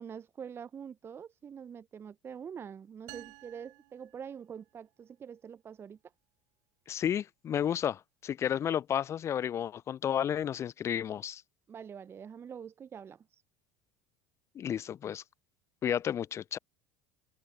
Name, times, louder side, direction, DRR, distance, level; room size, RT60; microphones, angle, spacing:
voice 1, 0.0-6.0 11.7-13.4, right 7 dB, 30° right, 0.7 m, -45 dB
sound 1, 3.1-4.9, right 28 dB, 55° right, 1.3 m, -53 dB
voice 2, 6.9-11.4 14.6-15.2 15.8-16.6, left 9 dB, 35° left, 0.6 m, -32 dB
open air
figure-of-eight pair, 70°, 9 cm